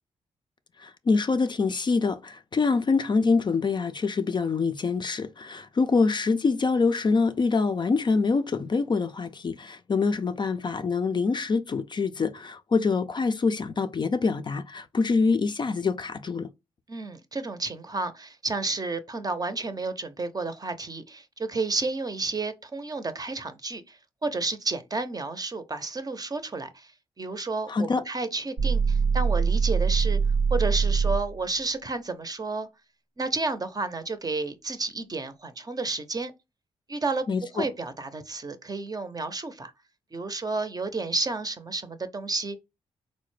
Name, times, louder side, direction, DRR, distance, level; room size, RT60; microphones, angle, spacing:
voice 1, 0.8-16.5 27.7-28.0 37.3-37.7, left 4 dB, 40° left, 0.4 m, -25 dB
voice 2, 16.9-26.9 27.2-30.2 30.5-32.7 33.2-36.3 36.9-37.3 37.5-39.7 40.1-42.6, right 3 dB, 30° right, 0.6 m, -31 dB
sound 1, 28.6-31.4, right 5 dB, 75° right, 0.7 m, -23 dB
3.8 x 2.1 x 3.1 m
supercardioid pair, 55°, 12 cm